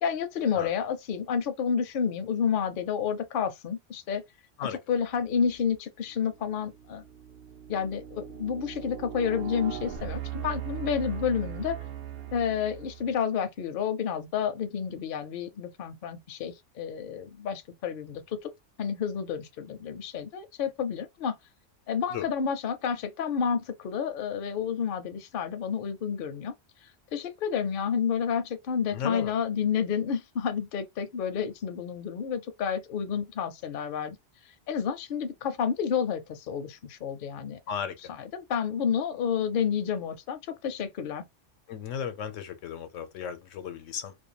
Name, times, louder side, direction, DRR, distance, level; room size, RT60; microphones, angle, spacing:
voice 1, 0.0-4.2 4.9-7.0 7.7-11.8 12.3-18.5 18.8-21.4 21.9-26.5 27.1-34.2 34.7-37.6 38.3-41.3, left 7 dB, 55° left, 0.6 m, -30 dB
sound 1, 5.4-5.8 6.4-13.2, right 11 dB, 60° right, 0.7 m, -39 dB
voice 2, 28.9-29.3 37.7-38.1 41.7-44.2, left 8 dB, 90° left, 1.0 m, -35 dB
2.5 x 2.2 x 2.8 m
omnidirectional pair, 1.2 m